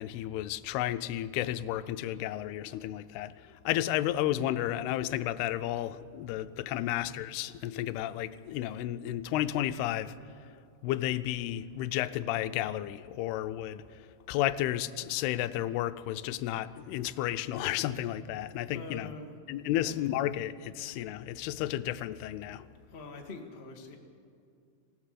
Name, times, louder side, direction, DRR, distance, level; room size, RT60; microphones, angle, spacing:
voice 1, 0.0-10.5 10.8-19.1 19.5-22.7, left 13 dB, 85° left, 2.6 m, -32 dB
voice 2, 18.7-19.4 19.6-19.9 22.9-24.0, left 3 dB, 65° left, 0.6 m, -44 dB
27.0 x 16.0 x 6.6 m
omnidirectional pair, 4.5 m